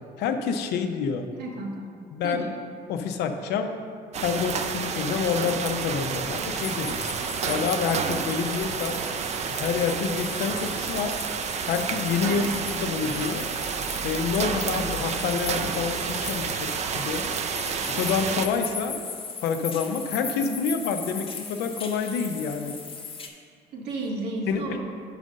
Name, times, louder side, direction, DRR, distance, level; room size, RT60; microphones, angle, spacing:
voice 1, 0.0-1.3 2.1-2.5 2.9-3.7 4.2-7.0 7.5-9.0 9.5-11.2 11.7-13.5 14.0-16.7 16.9-17.2 17.9-19.0 19.4-22.8 24.5-24.8, left 6 dB, 80° left, 6 dB, 0.6 m, -28 dB
voice 2, 1.4-1.9 2.2-2.6 12.2-12.6 23.7-24.8, right 2 dB, 80° right, 0 dB, 1.2 m, -32 dB
sound 1, 4.1-18.5, right 6 dB, 40° right, 0.4 m, -30 dB
sound 2, 6.6-23.3, left 5 dB, 35° left, 0.8 m, -38 dB
5.3 x 4.9 x 6.2 m, 2.2 s
cardioid pair, 110°, 17 cm